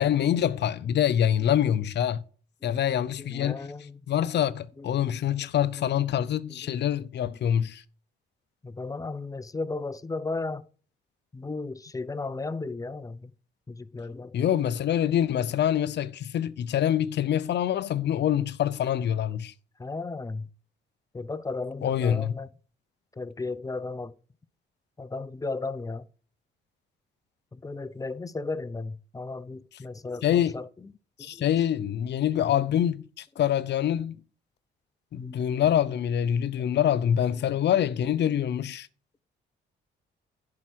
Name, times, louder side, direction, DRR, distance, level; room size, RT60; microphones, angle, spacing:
voice 1, 0.0-2.2 2.6-3.7 4.1-7.8 14.3-19.5 21.8-22.3 30.2-30.6 31.2-34.1 35.1-38.9, left 10 dB, 60° left, 0.6 m, -25 dB
voice 2, 3.2-4.0 4.8-5.1 5.8-5.9 6.5-6.6 8.6-10.7 11.3-13.3 13.7-14.3 19.8-20.5 21.1-22.5 23.1-24.1 25.0-26.1 27.5-30.7 31.2-31.5 35.2-35.4 37.5-37.6, left 3 dB, 15° left, 0.6 m, -35 dB
11.0 x 4.8 x 6.2 m
cardioid pair, 90°, 20 cm